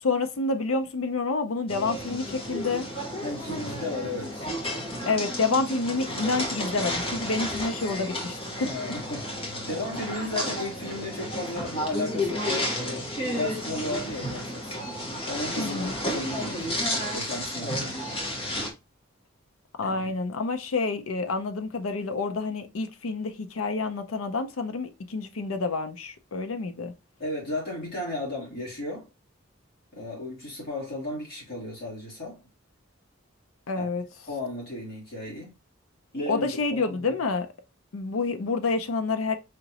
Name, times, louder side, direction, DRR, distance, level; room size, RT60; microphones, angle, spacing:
voice 1, 0.0-2.9 5.1-8.7 15.6-16.0 19.8-26.9 33.7-34.0 36.3-37.5 37.9-39.4, left 3 dB, 85° left, 0.5 m, -28 dB
sound 1, 1.7-18.7, left 1 dB, 30° left, 1.1 m, -32 dB
voice 2, 3.2-4.5 6.3-6.4 8.6-9.3 9.6-14.7 15.3-17.9 19.8-20.1 27.2-29.1 29.9-32.4 33.8-33.9 34.3-35.5 36.1-37.0, left 2 dB, 55° left, 2.6 m, -34 dB
4.9 x 2.9 x 2.8 m
head